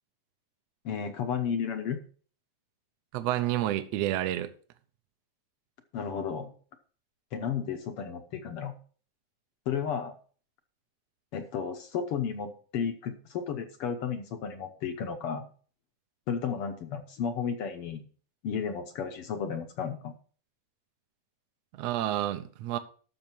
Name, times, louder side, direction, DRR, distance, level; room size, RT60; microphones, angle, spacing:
voice 1, 0.8-2.0 5.9-6.5 7.3-8.7 9.7-10.1 11.3-15.4 16.3-18.0 18.4-20.1, left 7 dB, 65° left, 1.4 m, -33 dB
voice 2, 3.1-4.5 21.8-22.8, right 13 dB, 75° right, 1.7 m, -29 dB
12.5 x 6.5 x 4.4 m
omnidirectional pair, 3.5 m